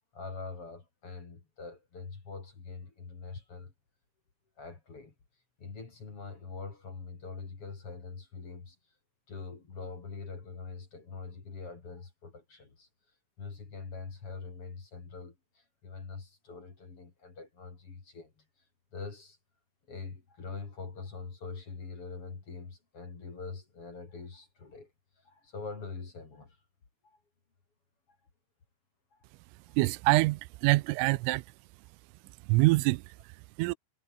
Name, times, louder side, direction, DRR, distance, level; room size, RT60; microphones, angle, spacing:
voice 1, 0.1-3.7 4.6-5.1 5.6-8.8 9.3-12.9 13.4-18.4 18.9-19.4 19.9-24.9 25.2-26.6 27.0-27.2 29.1-29.2, left 4 dB, 30° left, 3.7 m, -44 dB
voice 2, 29.8-31.5 32.2-33.7, right 22 dB, 85° right, 3.2 m, -26 dB
omnidirectional pair, 6.0 m